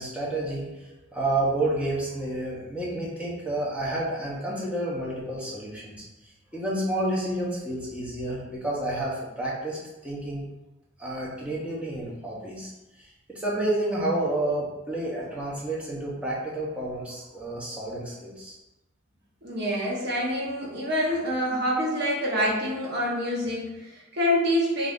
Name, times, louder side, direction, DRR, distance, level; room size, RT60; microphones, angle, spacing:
voice 1, 0.0-6.0 6.5-10.4 11.0-12.7 13.0-18.6, right 1 dB, 5° right, -6 dB, 0.7 m, -30 dB
voice 2, 19.4-24.9, equal, 55° right, -4 dB, 0.8 m, -26 dB
2.5 x 2.5 x 3.5 m, 1.0 s
head